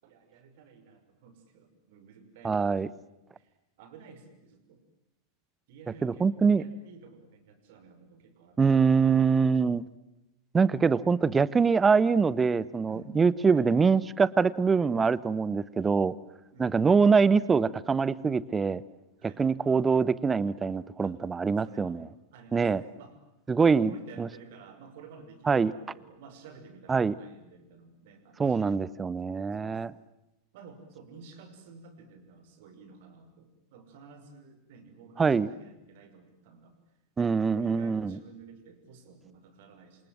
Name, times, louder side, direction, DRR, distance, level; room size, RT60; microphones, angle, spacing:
voice 1, 0.0-2.8 3.3-4.8 5.7-9.5 12.8-13.2 13.5-13.7 16.5-17.1 19.2-19.5 21.0-21.2 21.6-22.0 22.3-23.2 23.6-28.8 29.2-29.8 30.5-36.8 37.2-40.1, right 5 dB, 50° right, 8 dB, 5.8 m, -52 dB
voice 2, 2.4-2.9 6.0-6.6 8.6-9.8 10.5-16.1 16.6-18.8 19.4-22.1 22.5-22.8 23.5-23.9 24.2-24.3 25.5-25.7 26.9-27.1 28.4-29.9 35.2-35.5 37.2-38.2, right 5 dB, 15° right, 20 dB, 0.9 m, -24 dB
28.0 x 27.5 x 7.6 m, 0.92 s
figure-of-eight pair, 90°, 0 cm